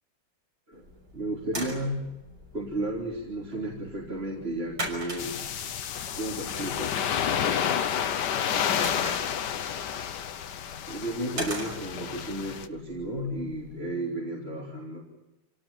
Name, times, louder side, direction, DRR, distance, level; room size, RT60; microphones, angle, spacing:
sound 1, 0.7-13.8, right 1 dB, 55° right, 6.5 m, -42 dB
voice 1, 1.1-2.2 2.5-5.4 6.2-7.0 10.9-15.0, right 1 dB, 30° right, -3 dB, 3.8 m, -33 dB
sound 2, 5.2-12.7, left 8 dB, 65° left, 1.6 m, -30 dB
27.5 x 18.5 x 8.7 m, 1.0 s
omnidirectional pair, 2.0 m